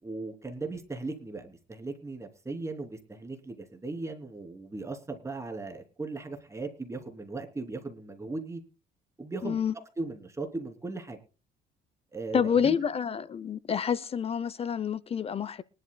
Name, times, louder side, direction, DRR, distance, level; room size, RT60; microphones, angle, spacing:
voice 1, 0.0-8.6 9.2-9.6 10.0-11.2 12.1-12.8, right 3 dB, 15° right, 3.1 m, -38 dB
voice 2, 9.4-9.7 12.3-15.6, left 7 dB, 35° left, 0.6 m, -28 dB
24.0 x 12.0 x 2.3 m
cardioid pair, 110°, 17 cm